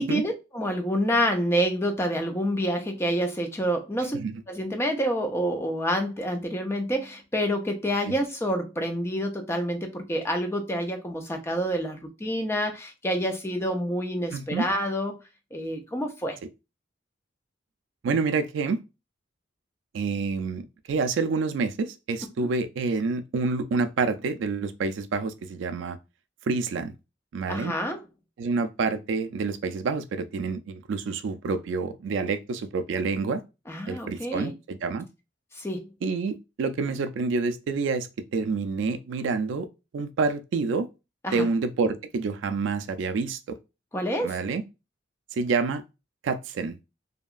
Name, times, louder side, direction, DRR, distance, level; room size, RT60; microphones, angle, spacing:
voice 1, 0.0-4.2 4.5-15.2 15.5-16.4 22.4-22.5 27.5-28.0 33.7-34.5 35.5-35.9 41.2-41.5 43.9-44.4, equal, 15° left, 0.4 m, -28 dB
voice 2, 14.3-14.7 18.0-18.8 19.9-26.0 26.5-26.9 27.3-27.7 28.4-33.4 33.9-35.1 36.0-39.7 39.9-40.9 41.3-43.4 44.2-44.6 45.3-45.8 46.2-46.8, right 4 dB, 75° right, 0.3 m, -28 dB
2.8 x 2.3 x 2.4 m
head